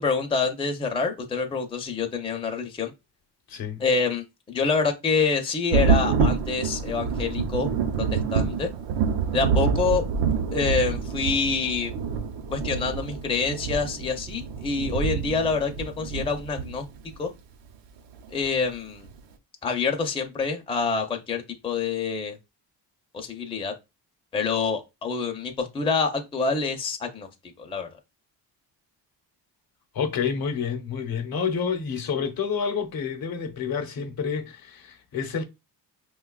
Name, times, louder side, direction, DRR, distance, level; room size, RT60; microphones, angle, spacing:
voice 1, 0.0-2.9 3.8-7.7 8.0-8.7 9.3-10.0 10.5-11.9 12.5-16.9 17.2-17.3 18.3-19.1 19.6-22.4 23.1-23.7 24.3-27.3 27.6-27.9, left 4 dB, 15° left, 0.5 m, -26 dB
voice 2, 3.5-3.8 29.9-35.4, left 6 dB, 55° left, 0.8 m, -29 dB
Thunder, 5.7-17.1 18.4-18.5 19.1-19.2, right 5 dB, 75° right, 0.7 m, -27 dB
5.0 x 2.3 x 2.3 m
cardioid pair, 105°, 43 cm